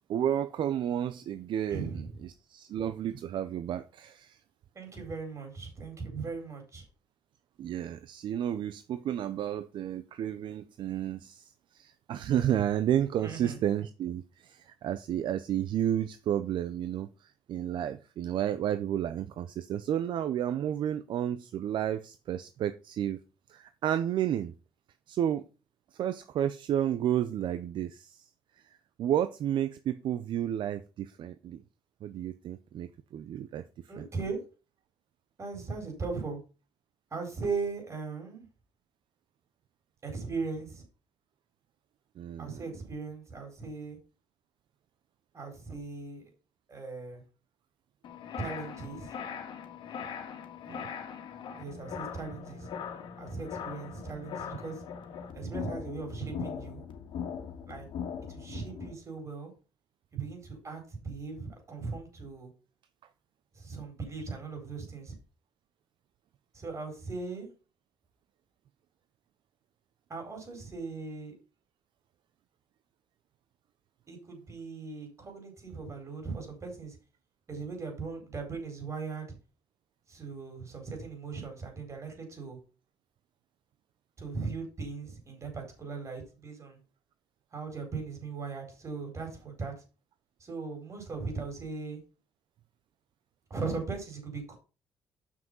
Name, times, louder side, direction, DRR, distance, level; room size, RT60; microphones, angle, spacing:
voice 1, 0.1-4.4 7.6-23.2 23.5-24.5 25.1-25.4 25.9-28.3 29.0-31.6 32.0-33.6 34.0-34.1 42.2-42.6 50.7-50.9 60.2-60.3, right 10 dB, 65° right, 0.6 m, -31 dB
voice 2, 1.7-2.1 4.7-6.8 13.2-13.6 33.9-34.4 35.4-36.4 37.1-38.4 40.0-40.8 42.4-44.0 45.3-46.3 46.7-47.2 48.4-49.1 51.6-52.7 53.2-54.8 55.3-56.8 57.7-57.9 58.3-59.5 60.1-62.5 63.5-65.2 66.5-67.5 70.1-71.3 74.1-77.0 77.5-79.4 80.1-82.6 84.2-86.8 87.5-89.7 90.4-92.0 93.5-94.6, right 4 dB, 35° right, 4.4 m, -38 dB
sound 1, 48.0-58.9, left 7 dB, 65° left, 1.8 m, -40 dB
7.4 x 6.1 x 5.4 m
cardioid pair, 100°, 9 cm